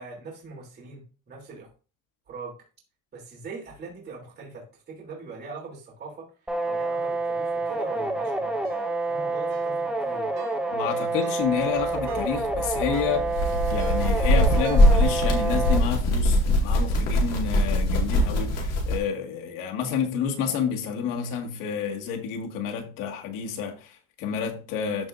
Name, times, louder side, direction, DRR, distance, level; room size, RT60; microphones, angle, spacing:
voice 1, 0.0-1.7 2.3-2.5 3.1-6.3 6.6-8.7 9.1-10.3, right 4 dB, 30° right, 3.3 m, -41 dB
sound 1, 6.5-15.8, right 3 dB, 5° right, 0.6 m, -28 dB
Ringtone, 8.6-8.9 9.5-9.7 10.4-10.6 11.2-11.5 12.1-12.4 12.9-13.3 13.8-14.2 14.6-15.1 15.4-15.5, right 5 dB, 60° right, 2.6 m, -43 dB
voice 2, 10.7-13.3 13.7-25.1, left 7 dB, 80° left, 2.0 m, -29 dB
sound 2, 11.7-19.0, equal, 50° left, 2.2 m, -22 dB
13.5 x 4.5 x 2.6 m
cardioid pair, 165°, 32 cm